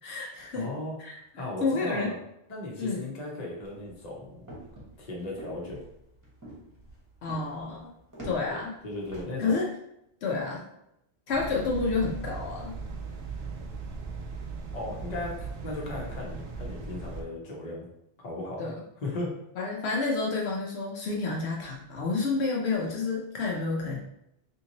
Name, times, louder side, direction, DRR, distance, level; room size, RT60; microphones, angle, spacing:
voice 1, 0.0-0.7 1.0-1.2 1.6-2.1 2.8-3.0 7.2-7.9 8.2-8.8 9.4-9.7 10.2-10.7 11.3-12.8 18.6-18.7 19.6-24.0, left 4 dB, 70° left, -2 dB, 0.9 m, -29 dB
voice 2, 0.5-2.2 2.5-4.5 5.0-5.8 8.5-8.6 8.8-9.6 14.7-17.9 18.2-18.7 19.0-19.3, left 2 dB, 40° left, -2 dB, 0.9 m, -36 dB
sound 1, 3.6-9.2, right 1 dB, 15° right, 1.0 m, -46 dB
sound 2, 11.3-17.2, right 4 dB, 70° right, 0.8 m, -38 dB
3.6 x 2.7 x 2.8 m, 0.80 s
omnidirectional pair, 1.1 m